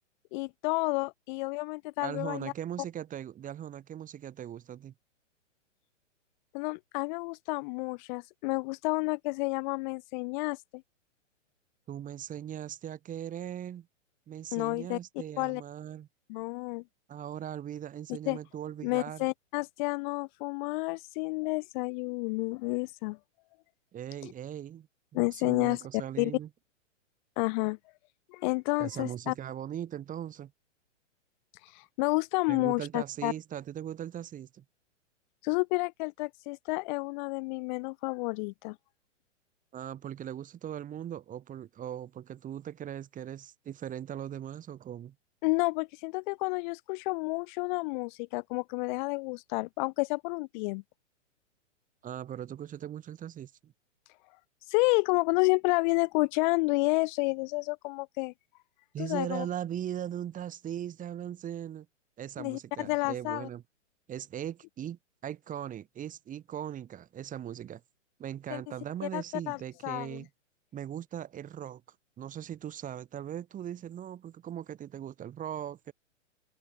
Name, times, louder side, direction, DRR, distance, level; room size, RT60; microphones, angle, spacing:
voice 1, 0.3-2.5 6.5-10.8 14.5-15.0 15.4-15.6 16.3-16.8 18.3-18.4 18.8-23.2 24.2-24.3 25.1-25.8 26.2-26.3 27.4-27.8 28.3-29.3 31.6-33.3 35.4-38.8 45.4-50.8 54.7-58.3 59.0-59.5 62.4-63.5 68.5-68.6 69.0-70.2, left 27 dB, 40° left, 1.9 m, -30 dB
voice 2, 2.0-4.9 11.9-13.9 14.3-16.1 17.1-19.3 23.9-24.9 25.1-26.5 28.8-30.5 32.5-34.6 39.7-45.1 52.0-53.7 58.9-61.9 62.2-63.6 64.1-67.8 68.2-70.3 70.7-71.8 72.2-75.9, right 10 dB, 20° right, 6.4 m, -39 dB
hypercardioid pair, 125°, 38 cm